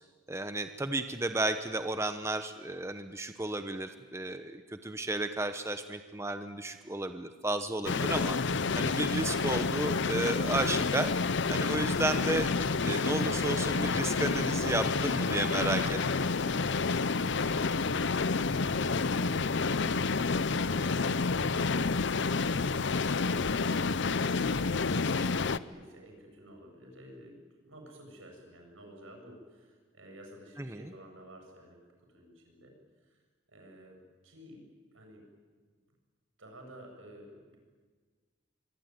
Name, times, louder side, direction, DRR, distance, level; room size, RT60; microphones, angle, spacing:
voice 1, 0.3-8.4 8.7-11.1 11.5-12.5 12.8-16.3 30.6-30.9, right 2 dB, 15° right, 8 dB, 0.9 m, -33 dB
sound 1, 7.8-25.6, left 4 dB, 60° left, 0.7 m, -29 dB
voice 2, 18.1-19.6 20.2-27.4 27.6-31.8 32.1-32.7 33.0-33.2 33.5-34.0 34.2-34.7 34.9-35.2 36.4-37.6, equal, 80° right, 2 dB, 7.8 m, -52 dB
25.0 x 24.0 x 9.6 m, 1.5 s
head